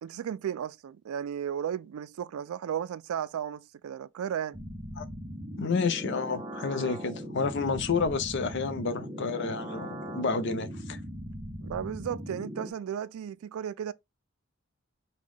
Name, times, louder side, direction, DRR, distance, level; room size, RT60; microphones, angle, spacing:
voice 1, 0.0-4.6 11.6-13.9, right 9 dB, 85° right, 0.3 m, -34 dB
sound 1, 4.5-12.7, equal, 20° right, 0.6 m, -39 dB
voice 2, 5.6-11.0, left 4 dB, 55° left, 0.6 m, -30 dB
5.1 x 2.2 x 3.5 m
head